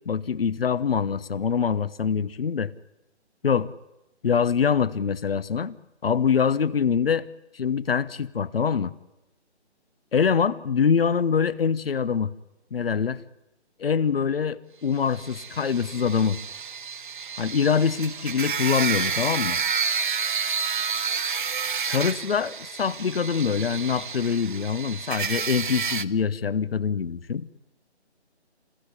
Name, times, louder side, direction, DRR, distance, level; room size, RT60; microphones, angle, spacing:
voice 1, 0.1-2.7 3.4-3.7 4.2-5.8 6.0-7.2 7.5-8.9 10.1-12.3 12.7-13.2 13.8-16.4 17.4-19.6 21.9-27.5, left 6 dB, 55° left, 19 dB, 1.1 m, -24 dB
sound 1, 15.1-26.0, right 6 dB, 45° right, 0.9 m, -30 dB
27.0 x 15.5 x 9.8 m, 0.94 s
hypercardioid pair, 165°, 34 cm